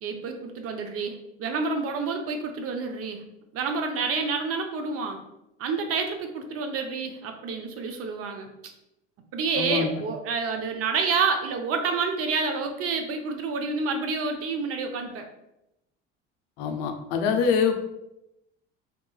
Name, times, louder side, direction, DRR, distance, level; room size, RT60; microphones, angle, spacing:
voice 1, 0.0-3.2 3.5-5.2 5.6-8.7 9.3-15.3, right 4 dB, 50° right, 5 dB, 0.5 m, -28 dB
voice 2, 9.6-9.9 16.6-17.7, left 6 dB, 80° left, 5 dB, 0.5 m, -24 dB
2.9 x 2.3 x 2.3 m, 0.87 s
supercardioid pair, 80°, 30 cm